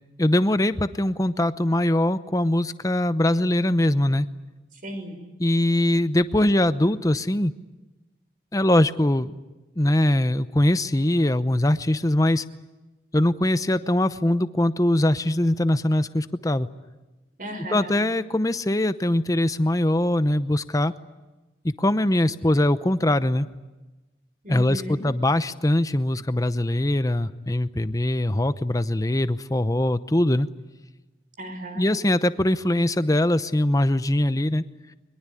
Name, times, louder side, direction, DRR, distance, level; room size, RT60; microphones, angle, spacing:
voice 1, 0.2-4.3 5.4-7.5 8.5-9.3 9.8-12.4 13.1-16.7 17.7-20.9 21.6-23.5 24.5-30.5 31.7-34.6, left 1 dB, 20° left, 13 dB, 0.8 m, -22 dB
voice 2, 4.8-5.2 17.4-17.9 24.4-25.0 31.4-31.9, equal, 50° right, 7 dB, 5.7 m, -34 dB
23.0 x 22.5 x 9.8 m, 1.1 s
head